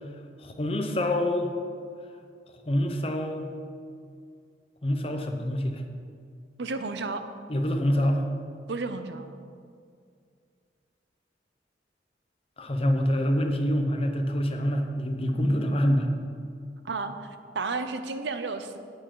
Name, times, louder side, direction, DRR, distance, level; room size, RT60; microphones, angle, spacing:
voice 1, 0.4-1.5 2.7-3.5 4.8-5.8 7.5-8.2 12.6-16.1, equal, 35° left, 4 dB, 0.8 m, -26 dB
voice 2, 6.6-7.2 8.7-9.2 16.8-17.1 17.5-18.8, right 4 dB, 80° right, 9 dB, 0.6 m, -32 dB
9.6 x 8.8 x 3.9 m, 2.3 s
head